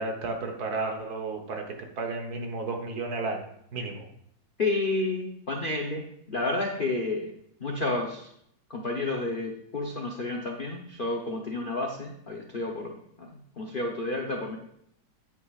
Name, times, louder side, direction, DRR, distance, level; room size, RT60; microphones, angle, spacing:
voice 1, 0.0-4.1, right 3 dB, 55° right, 4 dB, 1.5 m, -33 dB
voice 2, 4.6-7.3 7.6-8.3 8.7-14.6, left 2 dB, 55° left, 1 dB, 0.5 m, -31 dB
9.5 x 8.4 x 2.4 m, 0.71 s
omnidirectional pair, 2.1 m